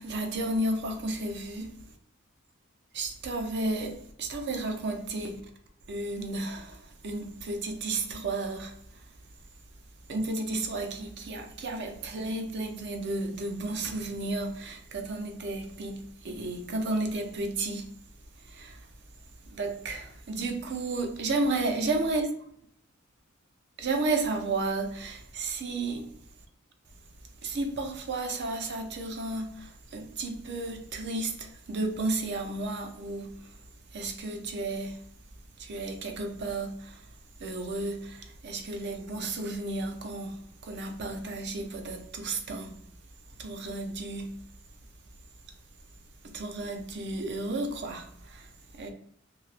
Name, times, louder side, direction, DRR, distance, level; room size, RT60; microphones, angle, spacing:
voice 1, 0.0-1.7 2.9-5.4 5.9-8.7 10.1-17.9 18.5-18.8 19.5-22.3 23.8-26.1 27.4-33.3 33.9-35.0 35.6-37.0 37.4-40.4 40.6-42.7 43.4-44.3 46.2-48.5 48.7-48.9, right 2 dB, 55° right, 0.6 m, -32 dB
2.8 x 2.3 x 3.2 m
head